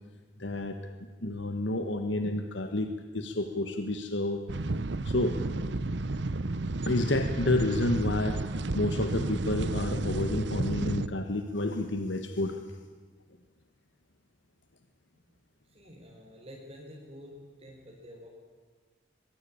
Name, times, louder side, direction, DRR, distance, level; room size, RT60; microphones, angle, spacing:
voice 1, 0.4-4.4 5.0-5.4 6.8-8.4 8.7-12.7, left 1 dB, 80° left, 6 dB, 1.5 m, -30 dB
sound 1, 4.5-11.1, right 2 dB, 70° right, 0.9 m, -32 dB
voice 2, 15.6-17.3 17.6-18.3, equal, 30° right, -2 dB, 4.7 m, -48 dB
23.5 x 22.0 x 8.7 m, 1.4 s
head